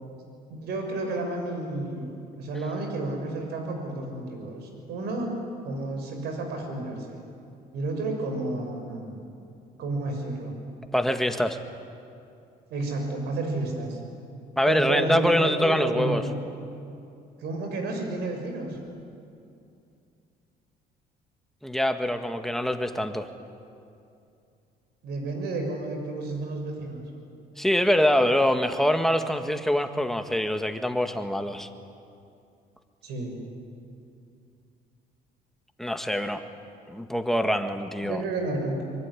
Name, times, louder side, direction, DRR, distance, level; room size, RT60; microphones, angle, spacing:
voice 1, 0.5-5.3 5.6-7.2 7.7-9.2 9.8-10.6 12.7-14.0 14.7-16.4 17.4-18.8 25.0-27.0 33.0-33.3 38.0-38.8, right 2 dB, 80° right, 3 dB, 6.3 m, -31 dB
voice 2, 10.9-11.6 14.6-16.2 21.6-23.3 27.6-31.7 35.8-36.4 36.9-38.2, equal, ahead, 7 dB, 1.8 m, -24 dB
24.5 x 23.0 x 10.0 m, 2.5 s
cardioid pair, 110°, 17 cm